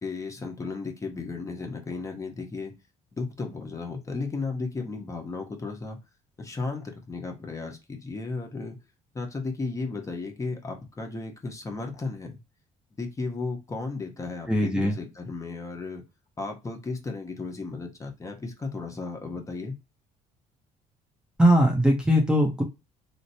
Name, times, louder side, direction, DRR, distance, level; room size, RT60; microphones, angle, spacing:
voice 1, 0.0-2.7 3.1-6.0 6.4-8.8 9.1-12.4 13.0-16.0 16.4-19.8, left 3 dB, 20° left, 0.9 m, -34 dB
voice 2, 14.5-14.9 21.4-22.6, equal, 5° right, 0.7 m, -20 dB
3.2 x 2.0 x 4.1 m
cardioid pair, 115°, 15 cm